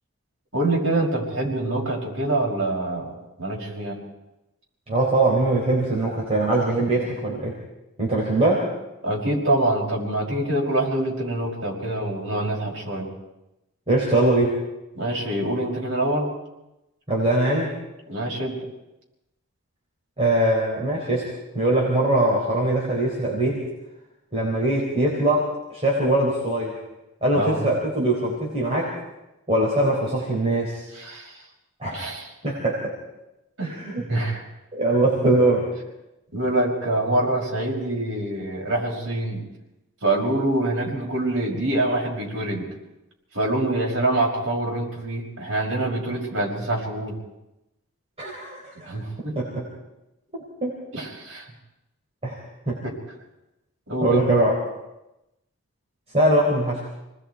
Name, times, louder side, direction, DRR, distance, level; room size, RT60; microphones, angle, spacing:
voice 1, 0.5-4.0 9.0-13.1 14.9-16.3 18.1-18.7 27.3-27.7 30.9-31.4 31.9-32.3 33.6-34.5 36.3-39.4 40.0-42.7 43.3-47.2 48.8-49.4 50.9-51.5 52.8-52.9 53.9-54.3, right 1 dB, 60° right, -2 dB, 5.7 m, -25 dB
voice 2, 4.9-7.5 8.0-8.6 13.9-14.5 17.1-17.7 20.2-21.2 21.5-23.6 24.3-26.7 27.2-28.9 29.5-30.8 31.8-32.1 32.4-32.9 33.6-34.0 34.7-35.7 48.2-48.9 49.4-49.6 50.6-50.7 52.2-52.4 52.7-52.8 54.0-54.5 56.1-56.8, right 1 dB, 30° right, -4 dB, 4.1 m, -22 dB
28.5 x 20.0 x 4.7 m, 0.93 s
head